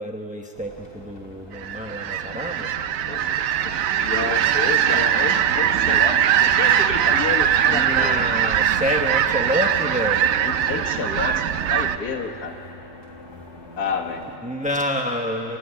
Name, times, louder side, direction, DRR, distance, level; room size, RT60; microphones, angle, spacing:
voice 1, 0.0-2.7 7.7-10.3 14.4-15.6, equal, 10° right, 1 dB, 0.5 m, -27 dB
sound 1, 0.5-14.4, left 1 dB, 35° left, 2.5 m, -43 dB
sound 2, 1.6-12.0, right 9 dB, 65° right, 0.8 m, -21 dB
voice 2, 4.0-8.2 10.4-12.5 13.8-14.2, left 5 dB, 55° left, 2 dB, 2.2 m, -30 dB
28.0 x 13.5 x 9.5 m, 2.7 s
omnidirectional pair, 2.0 m